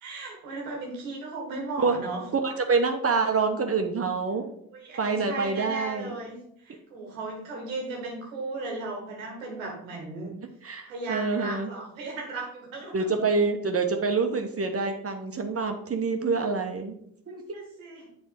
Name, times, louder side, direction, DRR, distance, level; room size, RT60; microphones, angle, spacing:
voice 1, 0.0-2.2 4.7-6.3 6.6-10.3 10.9-13.2 17.3-18.1, right 2 dB, 85° right, 0 dB, 1.5 m, -36 dB
voice 2, 2.4-4.5 5.0-6.1 10.6-11.7 12.9-16.9 17.3-17.4, right 4 dB, 35° right, 5 dB, 1.1 m, -26 dB
7.4 x 3.7 x 5.3 m, 0.71 s
hypercardioid pair, 40°, 40 cm